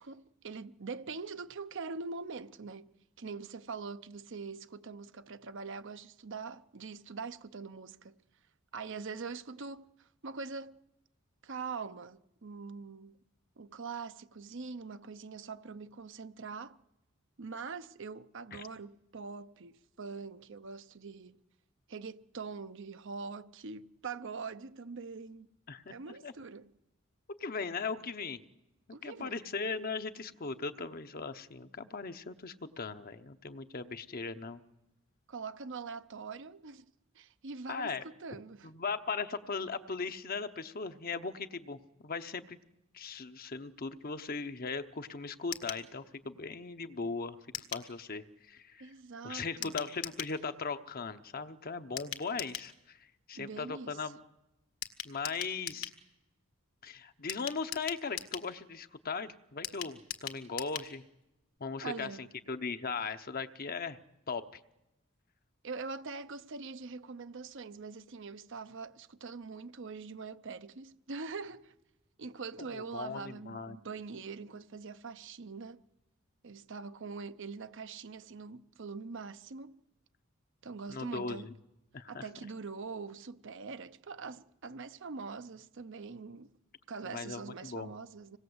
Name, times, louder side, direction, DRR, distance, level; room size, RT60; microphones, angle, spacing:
voice 1, 0.0-8.2 8.7-10.8 11.4-13.2 13.6-16.8 17.4-21.4 21.9-25.5 25.9-26.7 28.9-29.4 35.3-36.9 37.1-38.7 48.8-49.8 53.3-54.1 61.8-62.3 65.6-71.7 72.2-75.8 76.4-79.8 80.6-81.5 82.1-86.5 86.9-88.4, right 4 dB, 60° right, 0.8 m, -43 dB
voice 2, 25.7-26.3 27.3-28.4 29.0-34.6 37.7-38.0 38.6-42.6 42.9-48.9 49.2-53.0 53.3-54.2 55.0-55.9 56.8-61.0 61.6-64.0 64.3-64.6 72.6-73.8 80.9-81.5 81.9-82.3 87.0-87.9, left 4 dB, 45° left, 0.9 m, -38 dB
sound 1, 45.5-45.8 47.5-47.9 49.6-50.3 52.0-52.7 54.8-56.0 57.3-58.5 59.6-60.9 61.2-61.3 61.6-61.7, left 10 dB, 70° left, 1.8 m, -40 dB
26.0 x 19.5 x 8.0 m
head